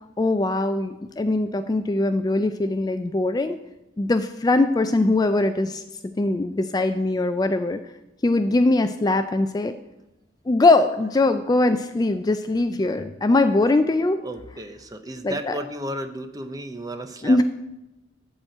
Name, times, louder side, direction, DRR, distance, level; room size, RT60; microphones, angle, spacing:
voice 1, 0.2-3.6 4.0-5.8 6.2-7.8 8.2-9.7 10.5-14.2 15.2-15.6 17.2-17.4, left 2 dB, 20° left, 9 dB, 0.3 m, -21 dB
voice 2, 14.2-17.4, right 1 dB, 20° right, 8 dB, 0.7 m, -33 dB
12.5 x 4.4 x 7.7 m, 0.98 s
head